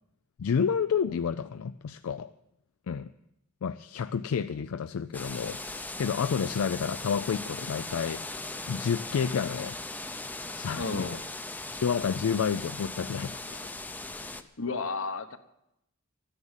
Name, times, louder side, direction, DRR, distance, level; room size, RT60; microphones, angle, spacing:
voice 1, 0.4-2.3 2.9-3.1 3.6-8.4 8.7-9.8 10.5-11.1 11.8-13.7 14.2-14.4, left 6 dB, 80° left, 11 dB, 0.4 m, -30 dB
sound 1, 5.1-14.4, left 2 dB, 10° left, 0.6 m, -39 dB
voice 2, 10.7-11.2 14.6-15.4, left 4 dB, 65° left, 9 dB, 1.0 m, -32 dB
13.0 x 10.0 x 7.2 m, 0.83 s
head